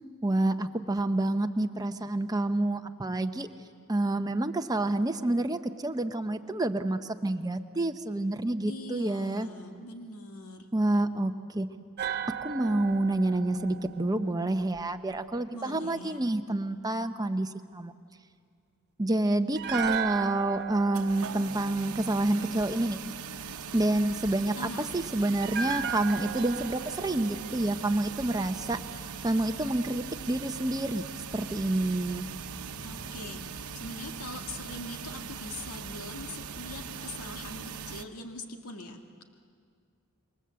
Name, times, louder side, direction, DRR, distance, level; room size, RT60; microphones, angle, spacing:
voice 1, 0.2-3.5 3.9-9.5 10.7-11.7 12.4-17.9 19.0-23.0 23.7-28.8 29.2-31.0 31.3-32.3, right 1 dB, 15° right, 8 dB, 0.8 m, -28 dB
voice 2, 8.7-10.7 15.5-16.2 24.6-24.9 32.8-39.2, left 2 dB, 80° left, 3 dB, 2.1 m, -42 dB
sound 1, 12.0-15.1 19.5-22.8 25.4-28.6 28.9-29.0, right 8 dB, 50° right, 0.7 m, -36 dB
sound 2, 20.9-38.0, right 6 dB, 75° right, 1.0 m, -40 dB
sound 3, 31.1-36.8, equal, 45° left, 3.5 m, -54 dB
27.0 x 23.5 x 7.7 m, 2.1 s
head